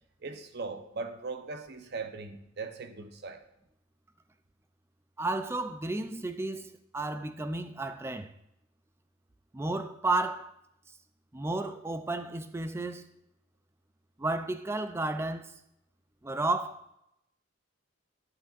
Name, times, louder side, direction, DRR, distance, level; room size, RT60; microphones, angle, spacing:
voice 1, 0.2-3.4, right 4 dB, 50° right, 0.7 m, -39 dB
voice 2, 5.2-8.3 9.5-10.5 11.3-13.1 14.2-15.5 16.2-16.9, right 2 dB, 10° right, 0.3 m, -32 dB
12.0 x 8.0 x 2.5 m
head